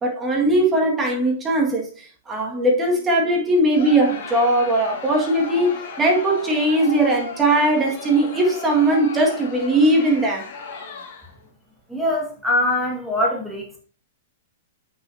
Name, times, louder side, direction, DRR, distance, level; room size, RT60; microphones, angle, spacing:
voice 1, 0.0-10.5, right 1 dB, 15° right, 1.8 m, -19 dB
Crowd, 3.7-11.4, left 4 dB, 50° left, 1.9 m, -36 dB
voice 2, 11.9-13.8, left 1 dB, ahead, 1.8 m, -23 dB
8.1 x 6.3 x 2.7 m
hypercardioid pair, 110°, 0 cm